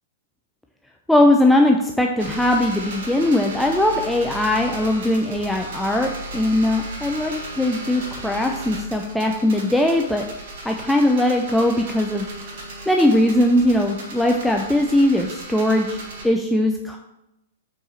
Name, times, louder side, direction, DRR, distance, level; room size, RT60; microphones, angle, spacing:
voice 1, 1.1-10.2 10.6-12.3 12.9-16.0 16.2-17.0, left 1 dB, 5° left, 2 dB, 0.5 m, -20 dB
sound 1, 2.2-16.3, right 1 dB, 60° right, 1.7 m, -36 dB
5.5 x 4.7 x 4.3 m, 0.90 s
figure-of-eight pair, 110°, 0 cm